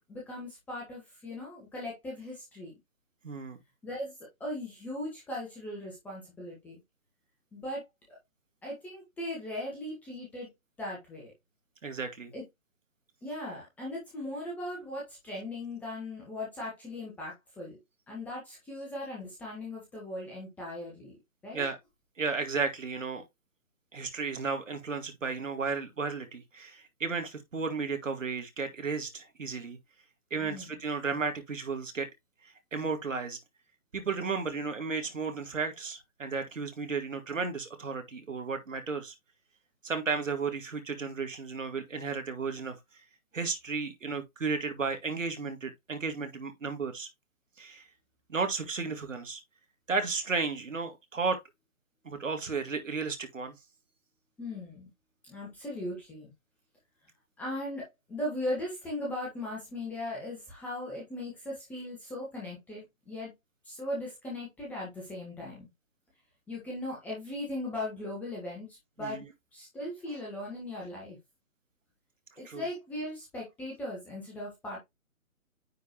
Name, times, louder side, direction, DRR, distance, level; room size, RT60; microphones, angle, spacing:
voice 1, 0.1-2.7 3.8-4.1 4.4-6.8 7.5-7.8 8.1-8.2 8.6-10.5 10.8-11.3 12.3-12.4 13.2-17.8 18.1-21.1 21.4-21.6 30.4-30.7 54.4-54.9 55.2-56.3 57.4-63.3 63.6-65.7 66.5-68.7 69.0-69.2 69.5-71.2 72.4-74.8, left 1 dB, 5° left, 1.1 m, -38 dB
voice 2, 3.2-3.6 11.8-12.3 21.5-21.8 22.2-23.3 23.9-29.8 30.3-32.1 32.4-33.4 33.9-39.1 39.8-42.8 43.3-47.1 47.6-47.9 48.3-49.4 49.9-51.4 52.0-53.5 69.0-69.2 72.4-72.7, right 4 dB, 60° right, 2.2 m, -33 dB
9.6 x 4.2 x 2.9 m
figure-of-eight pair, 145°, 43 cm